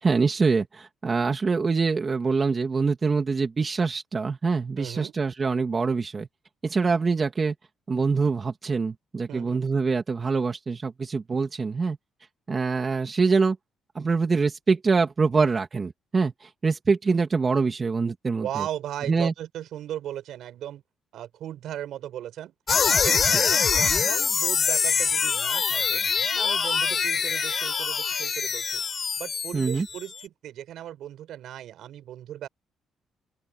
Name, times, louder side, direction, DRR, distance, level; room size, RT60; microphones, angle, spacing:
voice 1, 0.0-6.3 6.6-7.5 7.9-12.0 12.5-13.6 13.9-18.6 19.1-19.3 23.3-23.4 29.5-29.9, right 4 dB, 35° right, 2.7 m, -24 dB
voice 2, 4.8-5.1 9.3-9.7 18.4-20.8 21.1-22.5 22.9-32.5, right 11 dB, 75° right, 7.2 m, -37 dB
sound 1, 22.7-30.1, left 6 dB, 45° left, 6.9 m, -24 dB
open air
cardioid pair, 90°, 0 cm